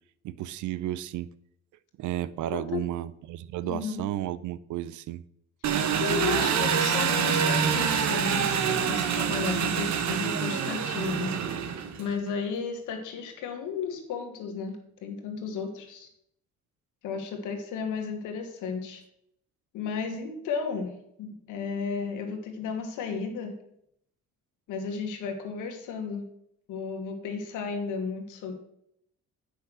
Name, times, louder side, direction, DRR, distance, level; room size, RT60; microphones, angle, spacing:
voice 1, 0.2-1.3 2.0-5.2, right 13 dB, 80° right, 17 dB, 0.6 m, -33 dB
voice 2, 2.5-2.8 3.6-4.0 6.0-16.1 17.0-19.0 19.7-23.5 24.7-26.3 26.7-28.5, left 5 dB, 90° left, 4 dB, 1.8 m, -34 dB
Engine, 5.6-12.1, right 7 dB, 65° right, 1.1 m, -26 dB
8.3 x 5.8 x 6.2 m, 0.74 s
cardioid pair, 90°, 30 cm